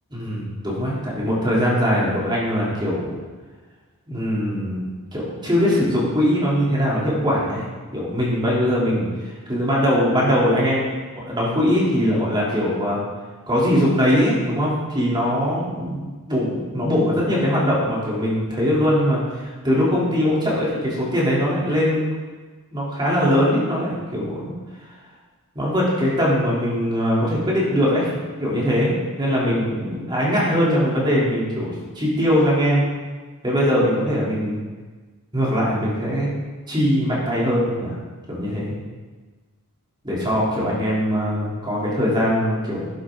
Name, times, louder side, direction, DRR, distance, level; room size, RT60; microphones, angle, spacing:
voice 1, 0.1-3.2 4.1-7.6 7.9-9.0 9.5-13.0 13.5-22.1 22.7-24.5 25.6-32.9 33.4-34.6 35.3-36.3 36.7-37.9 38.3-38.7 40.0-42.9, equal, 20° right, -6 dB, 3.5 m, -21 dB
12.0 x 10.5 x 3.9 m, 1.3 s
head